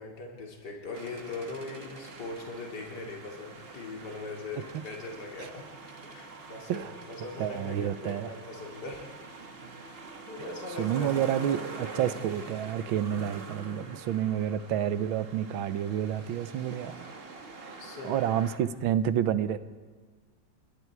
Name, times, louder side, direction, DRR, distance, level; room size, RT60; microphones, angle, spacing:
voice 1, 0.0-5.6 6.0-9.1 9.5-11.1 17.8-18.3, left 3 dB, 55° left, 0 dB, 3.2 m, -41 dB
sound 1, 0.9-18.6, right 3 dB, 30° right, 1.5 m, -45 dB
voice 2, 7.4-8.3 10.8-17.1 17.6-17.8 18.0-19.6, right 10 dB, 90° right, 13 dB, 1.6 m, -29 dB
28.0 x 21.0 x 4.7 m, 1.5 s
omnidirectional pair, 2.2 m